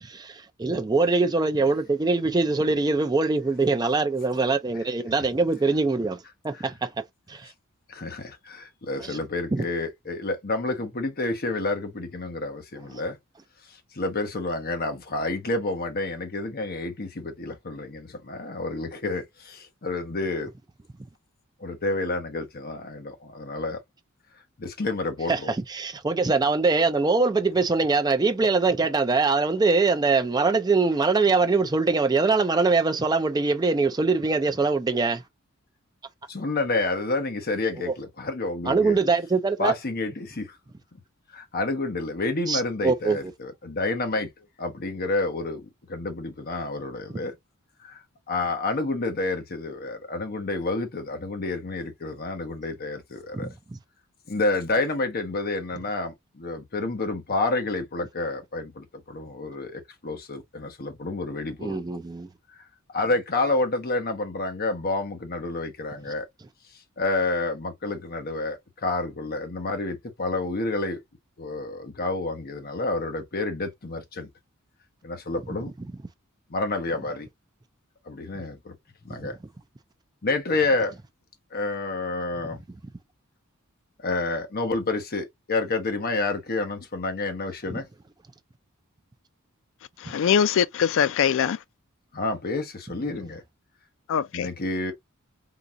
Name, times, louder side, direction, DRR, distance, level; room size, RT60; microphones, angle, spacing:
voice 1, 0.0-6.2 6.4-6.9 7.3-7.5 9.0-9.2 9.5-9.7 25.3-35.2 37.9-38.0 38.7-39.7 42.5-43.2 53.3-53.8 61.6-62.3 79.1-79.3, right 3 dB, 20° right, 0.4 m, -23 dB
voice 2, 7.9-13.2 13.7-20.5 21.6-23.8 24.6-25.5 36.3-39.0 39.6-40.6 41.3-44.3 44.6-47.4 47.8-53.5 54.3-61.8 62.9-66.3 67.0-71.0 71.4-74.3 75.0-75.7 76.5-77.3 78.1-78.7 79.0-79.4 80.2-80.9 81.5-82.6 84.0-87.9 92.1-93.4 94.3-94.9, left 2 dB, 45° left, 0.9 m, -29 dB
voice 3, 90.0-91.6 94.1-94.5, left 8 dB, 65° left, 0.3 m, -22 dB
3.9 x 2.4 x 2.8 m
head